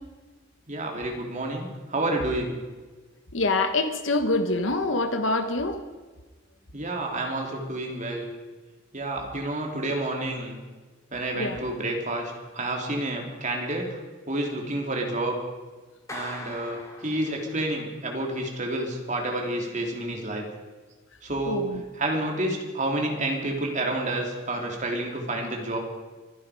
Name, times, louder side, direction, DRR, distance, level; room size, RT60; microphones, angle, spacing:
voice 1, 0.7-2.6 6.7-8.3 8.9-10.6 11.1-14.0 14.3-15.4 16.1-20.5 21.2-21.6 21.9-25.8, right 1 dB, 40° right, 1 dB, 3.1 m, -29 dB
voice 2, 3.3-5.8 11.4-11.6 21.5-21.8, left 2 dB, 75° left, 7 dB, 1.4 m, -25 dB
Clapping, 16.1-17.8, left 1 dB, 15° left, 2.8 m, -41 dB
24.5 x 11.5 x 5.0 m, 1.3 s
head